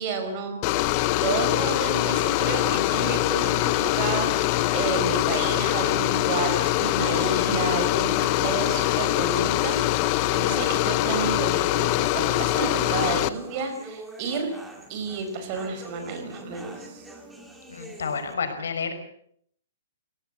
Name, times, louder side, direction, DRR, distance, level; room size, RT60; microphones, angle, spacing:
voice 1, 0.0-14.5 14.9-17.0, right 4 dB, 30° right, 7 dB, 4.8 m, -31 dB
sound 1, 0.6-13.3, left 16 dB, 25° left, 0.8 m, -23 dB
sound 2, 2.3-18.3, right 1 dB, 5° right, 2.1 m, -45 dB
voice 2, 17.7-18.9, left 5 dB, 85° left, 7 dB, 5.8 m, -30 dB
23.0 x 18.0 x 8.0 m, 0.67 s
hypercardioid pair, 175°, 0 cm